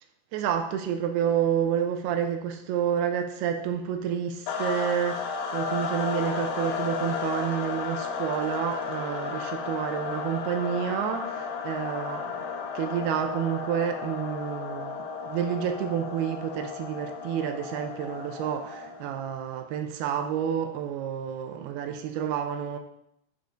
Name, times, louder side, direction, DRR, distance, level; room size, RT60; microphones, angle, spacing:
voice 1, 0.3-12.4 12.7-22.8, right 9 dB, 80° right, 5 dB, 2.3 m, -29 dB
sound 1, 4.5-19.2, left 5 dB, 80° left, 2.1 m, -33 dB
10.5 x 3.7 x 3.8 m, 0.75 s
omnidirectional pair, 5.3 m